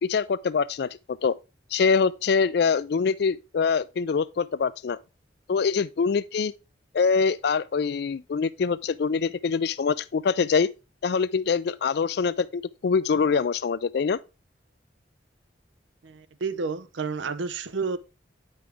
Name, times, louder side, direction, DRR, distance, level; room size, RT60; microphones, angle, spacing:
voice 1, 0.0-1.4 1.7-5.0 5.5-6.5 6.9-10.7 11.0-14.2, left 5 dB, 60° left, 0.4 m, -24 dB
voice 2, 16.0-18.0, right 4 dB, 85° right, 0.6 m, -30 dB
8.8 x 5.3 x 3.4 m
head